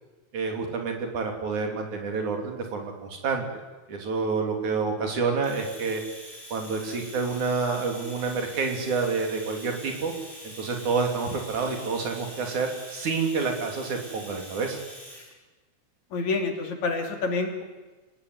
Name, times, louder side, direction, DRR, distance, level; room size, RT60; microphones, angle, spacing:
voice 1, 0.3-3.4 3.9-6.0 6.5-10.1 10.4-14.8, right 4 dB, 70° right, 3 dB, 4.5 m, -28 dB
Domestic sounds home sounds, 5.4-15.3, equal, 20° right, 5.5 m, -44 dB
voice 2, 16.1-17.6, left 3 dB, 65° left, 4 dB, 4.2 m, -28 dB
26.0 x 18.5 x 9.6 m, 1.2 s
omnidirectional pair, 3.5 m